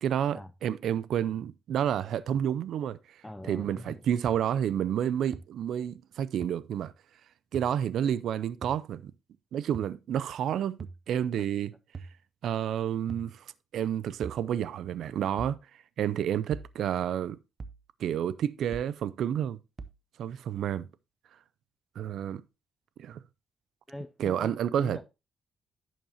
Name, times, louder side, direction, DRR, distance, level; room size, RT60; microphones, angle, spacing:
voice 1, 0.0-3.0 3.5-6.9 7.5-9.1 9.5-11.7 12.4-13.4 13.7-15.6 16.0-17.4 18.0-19.6 20.2-20.9 22.0-22.4 23.0-23.2 24.2-25.0, right 9 dB, 70° right, 0.4 m, -30 dB
voice 2, 3.2-4.0 11.4-11.5 23.9-25.0, left 1 dB, 5° left, 0.4 m, -42 dB
sound 1, 4.3-4.4 5.3-5.4 6.4-6.5 7.5-7.7 8.6-8.8 9.7-9.9 10.8-11.0 11.9-12.2 13.1-13.3 14.2-14.4 15.4-15.6 16.5-16.7 17.6-17.8 18.7-18.9 19.8-20.0, right 4 dB, 30° right, 0.7 m, -41 dB
10.5 x 7.3 x 2.8 m
cardioid pair, 130°, 0 cm